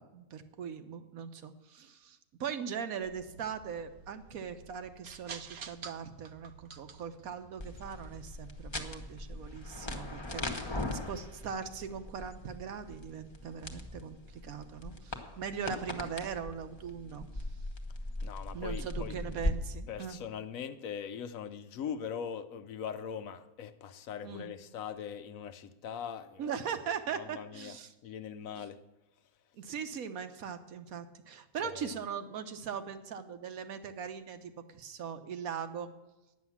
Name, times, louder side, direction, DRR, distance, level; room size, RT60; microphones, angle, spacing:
voice 1, 0.0-17.4 18.5-20.2 24.2-24.5 26.4-27.9 28.6-28.7 29.6-35.9, right 7 dB, 70° right, 9 dB, 1.2 m, -40 dB
sound 1, 3.0-10.4, right 5 dB, 55° right, 0.8 m, -52 dB
sound 2, 7.6-19.5, left 1 dB, 20° left, 1.0 m, -40 dB
voice 2, 10.4-11.0 18.2-19.1 19.9-26.5 27.1-27.7 28.0-28.8 31.6-31.9, left 7 dB, 70° left, 10 dB, 1.0 m, -41 dB
10.5 x 9.5 x 7.2 m, 1.0 s
omnidirectional pair, 1.6 m